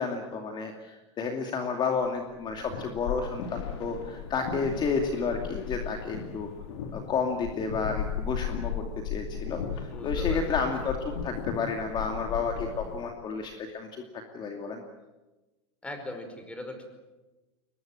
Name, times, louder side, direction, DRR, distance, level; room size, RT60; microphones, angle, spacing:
voice 1, 0.0-6.5 6.9-14.8, left 5 dB, 30° left, 4 dB, 2.5 m, -31 dB
sound 1, 2.3-13.1, left 7 dB, 80° left, 3.4 m, -35 dB
voice 2, 9.9-10.6 15.8-16.8, left 1 dB, 10° left, 6 dB, 5.1 m, -40 dB
22.5 x 21.0 x 9.0 m, 1.1 s
supercardioid pair, 125°, 15 cm